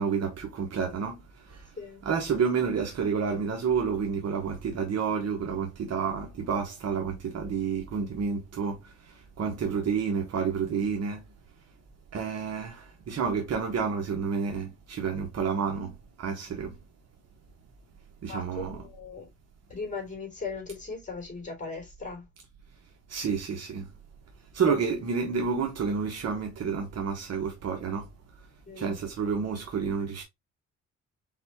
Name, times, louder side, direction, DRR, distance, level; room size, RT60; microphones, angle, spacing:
voice 1, 0.0-1.8 2.0-11.2 12.1-16.8 18.2-18.9 23.1-23.9 24.5-28.5 28.7-30.2, right 6 dB, 55° right, 1.2 m, -30 dB
voice 2, 18.3-19.3 19.7-22.3 24.7-24.8 28.7-29.0, left 4 dB, 25° left, 3.3 m, -37 dB
4.6 x 4.0 x 2.8 m
cardioid pair, 90°, 30 cm